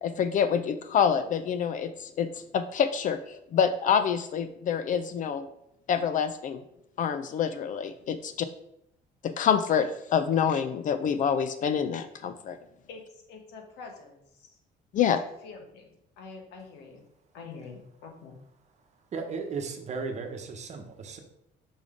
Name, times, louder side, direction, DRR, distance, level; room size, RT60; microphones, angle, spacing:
voice 1, 0.0-5.5 5.9-6.6 7.0-8.5 9.2-12.6 14.9-15.2, left 7 dB, 50° left, 11 dB, 0.4 m, -27 dB
voice 2, 12.9-14.6 15.4-17.0 17.3-18.3, left 4 dB, 85° left, 3 dB, 1.3 m, -46 dB
voice 3, 19.1-21.2, right 4 dB, 40° right, 5 dB, 1.0 m, -35 dB
5.2 x 3.6 x 5.0 m, 0.78 s
cardioid pair, 110°, 17 cm